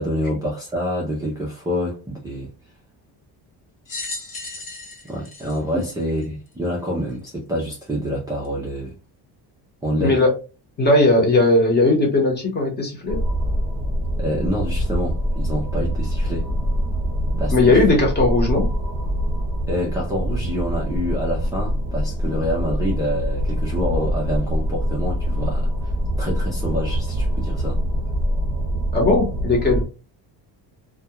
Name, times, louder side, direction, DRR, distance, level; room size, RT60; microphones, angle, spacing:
voice 1, 0.0-2.5 5.0-8.9 9.8-10.2 14.2-16.5 17.4-17.8 19.7-27.8, equal, 10° right, 0.3 m, -27 dB
sound 1, 3.8-6.5 7.2-7.3 8.4-8.5, left 3 dB, 45° left, 1.1 m, -35 dB
voice 2, 10.0-10.3 10.8-13.2 17.5-18.7 28.9-29.9, left 2 dB, 25° left, 0.8 m, -18 dB
sound 2, 13.1-29.8, equal, 25° right, 0.9 m, -24 dB
2.3 x 2.1 x 2.8 m
cardioid pair, 155°, 44 cm